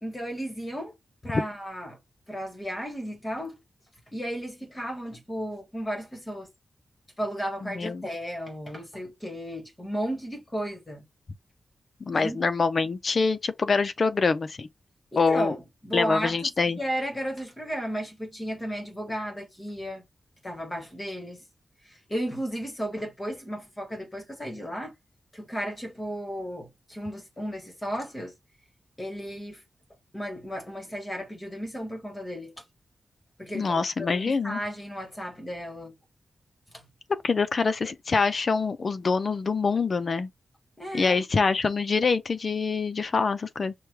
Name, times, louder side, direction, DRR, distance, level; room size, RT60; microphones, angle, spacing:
voice 1, 0.0-0.9 1.2-2.0 2.3-3.6 4.1-6.5 7.2-11.0 12.1-12.4 15.1-16.5 16.8-20.0 20.4-21.5 21.8-24.9 25.3-28.3 29.0-29.6 30.1-32.5 33.4-35.9 36.7-36.9 40.8-41.2, equal, 15° left, 1.7 m, -34 dB
voice 2, 7.6-8.1 12.0-14.7 15.2-15.6 15.9-16.8 33.5-34.6 37.2-40.3 40.9-43.7, left 4 dB, 40° left, 0.5 m, -25 dB
5.8 x 2.3 x 3.2 m
wide cardioid pair, 165°, 0 cm